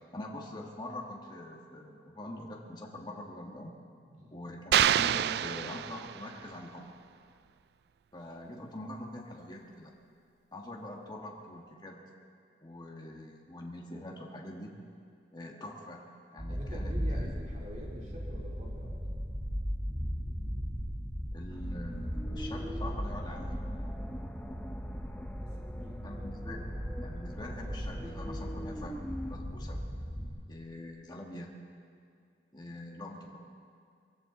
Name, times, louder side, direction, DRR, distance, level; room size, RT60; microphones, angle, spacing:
voice 1, 0.1-3.7 4.3-7.0 8.1-9.9 10.5-12.0 12.6-14.7 15.3-16.0 16.3-17.4 21.3-23.6 26.0-26.7 27.0-29.0 29.3-29.8 30.5-31.6 32.5-33.4, left 1 dB, 25° left, -1 dB, 1.8 m, -44 dB
sound 1, 4.7-6.4, right 10 dB, 65° right, 0.3 m, -27 dB
sound 2, 16.4-30.3, equal, 15° right, 2.4 m, -37 dB
voice 2, 16.5-19.1 25.4-26.0 27.3-28.1 28.7-28.8, equal, 45° right, -4 dB, 3.3 m, -47 dB
sound 3, 21.5-29.4, equal, 10° left, 0.6 m, -44 dB
23.0 x 16.0 x 3.9 m, 2.3 s
head